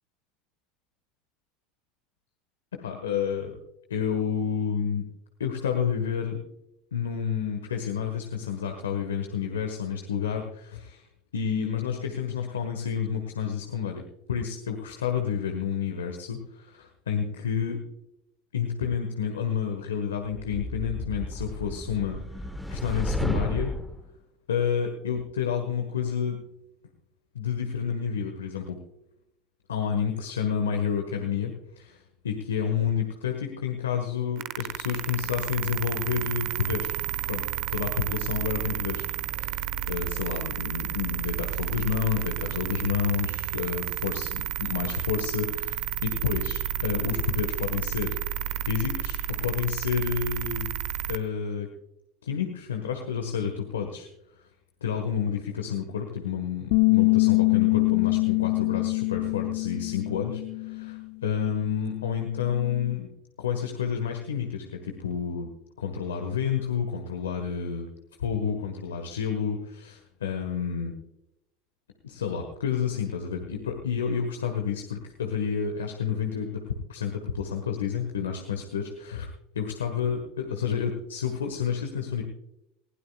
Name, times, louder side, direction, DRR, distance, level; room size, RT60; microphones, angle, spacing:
voice 1, 2.7-3.6 3.9-5.1 5.4-6.4 6.9-11.1 11.3-14.0 14.3-17.8 18.5-22.2 22.7-23.7 24.5-26.4 27.3-28.8 29.7-36.9 37.3-37.4 37.7-39.0 39.4-48.2 48.6-50.7 51.1-51.7 52.2-54.1 54.8-63.1 63.4-65.5 65.8-67.9 68.2-71.0 72.0-79.3 79.5-82.2, left 7 dB, 90° left, 4 dB, 1.4 m, -30 dB
sound 1, 20.4-24.0, equal, ahead, 1.0 m, -33 dB
sound 2, 34.4-51.2, right 12 dB, 60° right, 0.9 m, -31 dB
Bass guitar, 56.7-61.0 61.3-62.9, left 31 dB, 65° left, 0.5 m, -25 dB
20.0 x 15.5 x 2.4 m, 0.85 s
hypercardioid pair, 85°, 0 cm